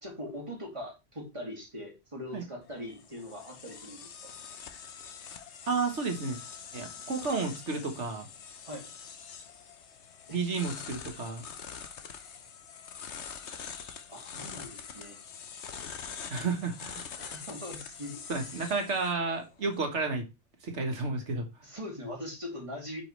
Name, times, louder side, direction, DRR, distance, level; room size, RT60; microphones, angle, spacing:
voice 1, 0.0-4.3 8.6-8.9 10.3-10.4 14.1-15.2 17.2-18.3 21.6-23.0, left 1 dB, 25° right, -1 dB, 2.5 m, -41 dB
sound 1, 2.6-19.8, left 7 dB, 70° left, 1.2 m, -45 dB
voice 2, 5.7-6.4 6.7-8.3 10.3-11.5 16.3-17.1 18.3-20.3 20.6-21.5, right 4 dB, 75° right, 4 dB, 1.8 m, -31 dB
8.6 x 5.4 x 3.3 m, 0.26 s
omnidirectional pair, 1.2 m